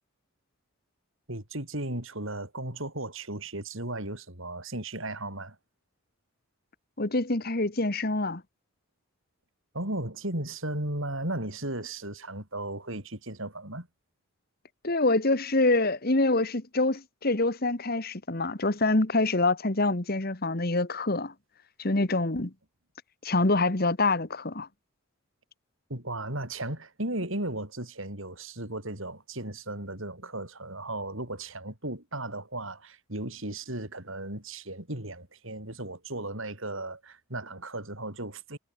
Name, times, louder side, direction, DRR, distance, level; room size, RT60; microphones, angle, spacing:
voice 1, 1.3-5.6 9.7-13.9 25.9-38.6, right 1 dB, 60° right, 5.8 m, -35 dB
voice 2, 7.0-8.4 14.8-21.3 21.8-22.5 23.2-24.7, left 2 dB, 45° left, 1.5 m, -26 dB
head